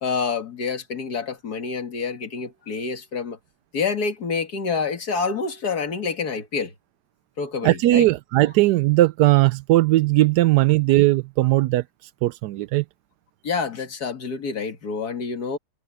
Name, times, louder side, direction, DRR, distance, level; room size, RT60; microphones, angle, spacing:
voice 1, 0.0-3.4 3.7-6.7 7.4-8.1 13.4-15.6, left 5 dB, 65° left, 2.5 m, -27 dB
voice 2, 7.6-12.8, right 17 dB, 80° right, 1.1 m, -18 dB
omnidirectional pair, 1.8 m